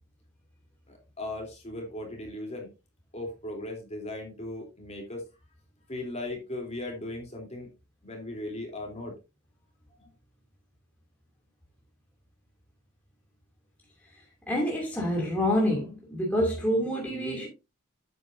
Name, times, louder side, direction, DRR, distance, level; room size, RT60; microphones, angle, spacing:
voice 1, 0.9-2.7 3.1-5.2 5.9-7.7 8.0-9.1 17.1-17.4, left 1 dB, 30° left, 3.3 m, -37 dB
voice 2, 14.5-17.5, equal, 5° left, 2.5 m, -27 dB
9.3 x 8.2 x 2.6 m
head